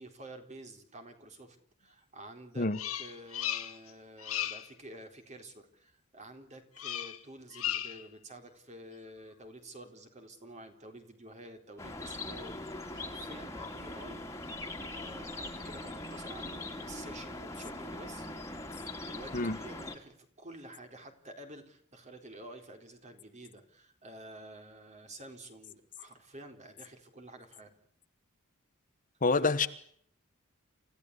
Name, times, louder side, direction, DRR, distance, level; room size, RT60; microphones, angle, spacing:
voice 1, 0.0-2.7 2.9-18.3 19.0-27.7 29.4-29.7, right 1 dB, 35° right, 4.0 m, -50 dB
Bird vocalization bird call bird song, 2.7-3.9 4.2-4.7 6.8-7.2 7.5-8.1, left 11 dB, 85° left, 2.1 m, -36 dB
sound 1, 11.8-20.0, left 2 dB, 15° left, 2.7 m, -41 dB
voice 2, 29.2-29.7, left 3 dB, 40° left, 1.2 m, -27 dB
29.0 x 15.5 x 8.3 m
head